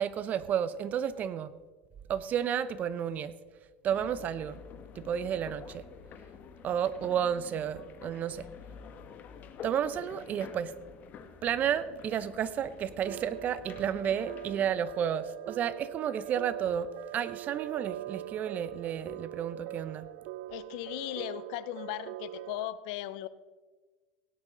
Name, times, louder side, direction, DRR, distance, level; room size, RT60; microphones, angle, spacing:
voice 1, 0.0-1.5 2.1-3.3 3.8-4.6 5.0-5.8 6.6-8.4 9.6-10.7 11.4-20.1, right 9 dB, 40° right, 16 dB, 0.7 m, -32 dB
sound 1, 3.9-14.7, left 7 dB, 45° left, 1.4 m, -49 dB
sound 2, 13.1-22.7, right 15 dB, 65° right, 0.4 m, -42 dB
voice 2, 20.5-23.3, left 15 dB, 70° left, 16 dB, 0.6 m, -37 dB
17.0 x 9.7 x 3.9 m, 1.4 s
supercardioid pair, 110°, 4 cm